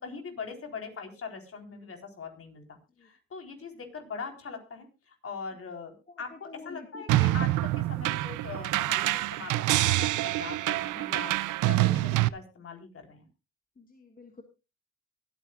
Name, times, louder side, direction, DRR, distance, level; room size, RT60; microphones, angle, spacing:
voice 1, 0.0-11.4 11.7-13.3, left 5 dB, 50° left, 4 dB, 4.0 m, -41 dB
voice 2, 6.3-7.2 13.8-14.4, left 3 dB, 30° left, 4 dB, 1.8 m, -48 dB
sound 1, 7.1-12.3, right 17 dB, 85° right, 0.6 m, -26 dB
23.0 x 9.1 x 2.4 m, 0.29 s
cardioid pair, 90°, 30 cm